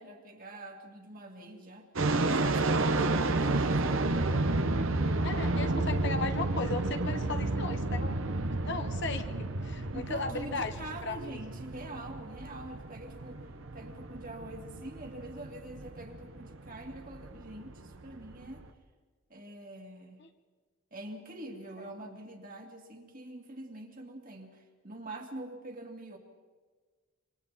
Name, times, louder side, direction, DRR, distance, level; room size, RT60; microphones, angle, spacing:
voice 1, 0.0-4.0 9.9-13.5 13.7-18.7 19.3-20.2 20.9-26.2, right 1 dB, 40° right, 2 dB, 2.4 m, -44 dB
sound 1, 2.0-18.7, right 2 dB, 65° right, 1.1 m, -31 dB
voice 2, 5.2-8.3 8.6-11.3 20.2-20.3, left 3 dB, 55° left, 7 dB, 1.2 m, -36 dB
27.0 x 24.5 x 4.3 m, 1.4 s
head